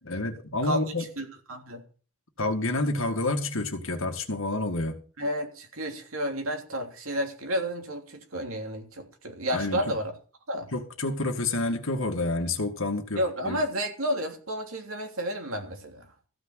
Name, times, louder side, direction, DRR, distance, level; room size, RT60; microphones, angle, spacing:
voice 1, 0.0-1.1 2.4-5.0 9.5-9.8 10.7-13.6, left 2 dB, 60° left, 2.0 m, -29 dB
voice 2, 1.2-1.8 5.2-10.1 10.5-10.7 13.1-16.1, equal, 65° right, 3.1 m, -31 dB
15.0 x 6.1 x 8.2 m
head